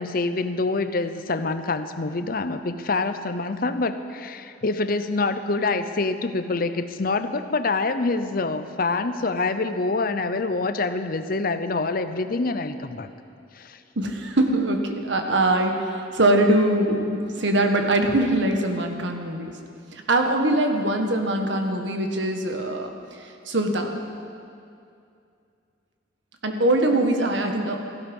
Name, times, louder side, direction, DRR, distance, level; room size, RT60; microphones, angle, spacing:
voice 1, 0.0-13.1 13.6-13.8, left 3 dB, 50° left, 10 dB, 0.7 m, -26 dB
voice 2, 14.0-19.5 20.1-22.9 23.5-24.0 26.4-27.8, right 1 dB, 75° right, 3 dB, 1.6 m, -22 dB
17.0 x 15.0 x 5.4 m, 2.5 s
head